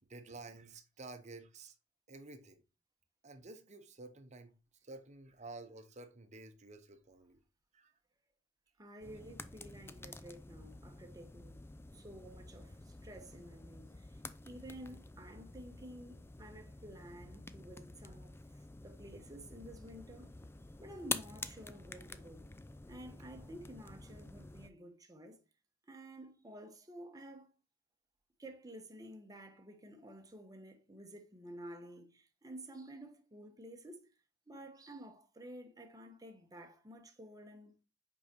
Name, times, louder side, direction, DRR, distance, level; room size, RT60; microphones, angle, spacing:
voice 1, 0.1-1.8 2.1-2.6 3.2-4.6 4.8-7.4 7.7-7.9, right 3 dB, 35° right, 0.9 m, -51 dB
voice 2, 8.8-11.6 11.9-18.4 18.8-20.3 20.8-22.5 22.8-25.4 25.9-27.5 28.4-34.1 34.5-37.8, right 1 dB, 20° right, 1.0 m, -52 dB
sound 1, 9.0-24.7, left 3 dB, 10° left, 0.3 m, -48 dB
5.5 x 4.8 x 4.4 m
head